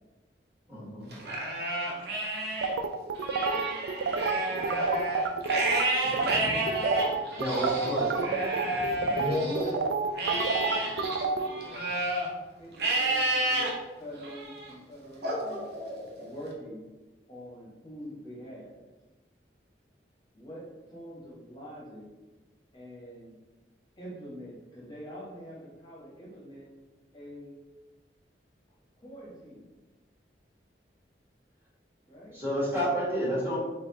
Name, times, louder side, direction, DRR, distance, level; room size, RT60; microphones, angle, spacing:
voice 1, 0.7-1.1 7.4-8.1 32.3-33.6, equal, 10° right, -9 dB, 1.5 m, -29 dB
Livestock farm animals working animals, 1.1-2.7 3.1-9.7 10.2-12.3 12.8-13.7 14.2-14.7 15.2-16.3, right 2 dB, 65° right, 0.8 m, -30 dB
sound 1, 2.6-5.8 6.1-6.4 6.7-11.5, right 4 dB, 90° right, 0.3 m, -29 dB
voice 2, 6.0-7.1 8.5-9.5 10.1-10.4 10.9-11.0 11.8-11.9, left 2 dB, 40° left, -3 dB, 0.5 m, -37 dB
voice 3, 9.4-9.7 10.1-10.7 10.9-11.8 12.6-13.6 14.0-15.6 16.2-16.9 17.3-18.7 20.3-22.1 22.7-23.3 24.0-26.7 27.1-27.6 29.0-29.7 32.1-32.4, equal, 25° left, -5 dB, 0.9 m, -44 dB
4.0 x 3.3 x 2.8 m, 1.2 s
head